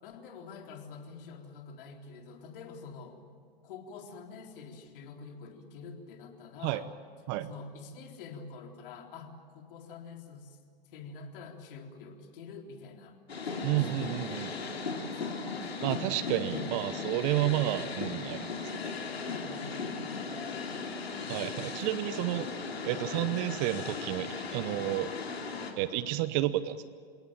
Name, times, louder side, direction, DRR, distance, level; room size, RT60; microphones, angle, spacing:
voice 1, 0.0-3.2 3.6-6.9 7.4-10.6 10.9-13.2 13.4-15.7 16.5-16.7 18.9-21.0 21.5-22.0, left 5 dB, 60° left, 3 dB, 3.8 m, -47 dB
sound 1, 13.3-25.7, left 4 dB, 90° left, 3.2 m, -37 dB
voice 2, 13.6-14.5 15.8-18.5 21.3-22.5 22.8-25.1 25.8-26.9, right 14 dB, 45° right, 15 dB, 1.0 m, -31 dB
29.0 x 17.5 x 9.0 m, 2.2 s
hypercardioid pair, 105°, 30 cm